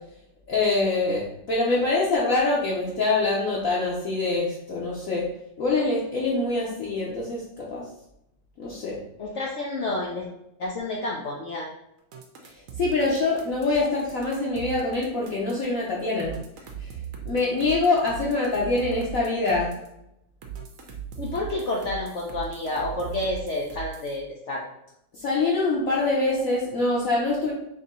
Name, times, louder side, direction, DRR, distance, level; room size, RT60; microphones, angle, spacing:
voice 1, 0.5-5.3 5.6-7.8 8.6-9.0 12.8-16.4 16.8-16.9 17.2-19.7 25.2-27.5, left 3 dB, 60° left, -5 dB, 1.0 m, -24 dB
voice 2, 9.2-10.3 10.6-11.7 21.2-24.6, left 2 dB, 80° left, -2 dB, 0.6 m, -29 dB
sound 1, 12.1-15.7 16.2-19.9 20.4-24.2, right 8 dB, 60° right, 0.9 m, -38 dB
3.7 x 2.7 x 4.1 m, 0.82 s
omnidirectional pair, 1.9 m